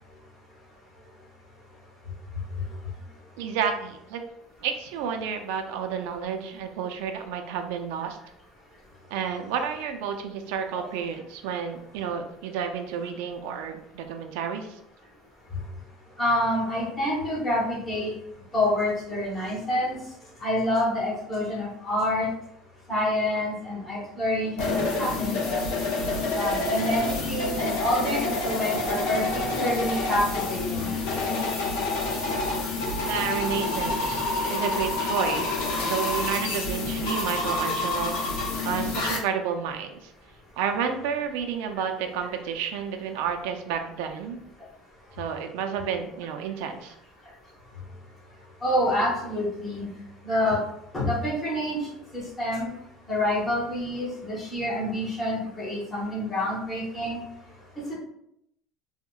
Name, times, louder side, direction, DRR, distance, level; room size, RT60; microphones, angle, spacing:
voice 1, 3.4-4.2 4.6-8.2 9.1-14.8 33.1-38.3 38.6-40.1 40.6-44.4 45.2-46.9, right 7 dB, 85° right, 5 dB, 0.4 m, -31 dB
voice 2, 16.2-18.1 18.5-20.0 20.4-22.3 22.9-25.6 26.3-30.9 48.6-49.9 50.2-50.6 50.9-51.8 52.1-52.7 53.1-57.2 57.9-58.0, left 1 dB, 15° left, -6 dB, 1.0 m, -27 dB
sound 1, 24.6-39.2, left 2 dB, 80° left, 0.6 m, -28 dB
3.6 x 2.1 x 2.3 m, 0.76 s
cardioid pair, 170°, 0 cm